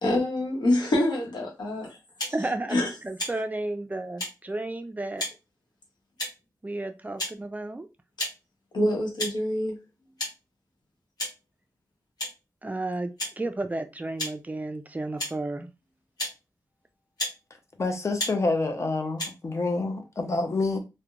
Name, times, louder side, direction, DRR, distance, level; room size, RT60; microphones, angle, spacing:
voice 1, 0.0-2.0 2.7-2.9 8.7-9.8, left 1 dB, 90° left, 0.9 m, -25 dB
sound 1, 2.2-2.4 3.2-3.3 4.2-4.3 5.2-5.3 6.2-6.4 7.2-7.3 8.2-8.3 9.2-9.4 10.2-10.3 11.2-11.4 12.2-12.3 13.2-13.3 14.2-14.3 15.2-15.3 16.2-16.3 17.2-17.4 18.2-18.3 19.2-19.3, left 1 dB, 65° left, 1.2 m, -31 dB
voice 2, 2.3-5.2 6.6-7.9 12.6-15.7, right 2 dB, 20° right, 0.3 m, -32 dB
voice 3, 17.8-20.8, left 3 dB, 40° left, 0.5 m, -27 dB
2.9 x 2.1 x 2.4 m
wide cardioid pair, 95°, 7 cm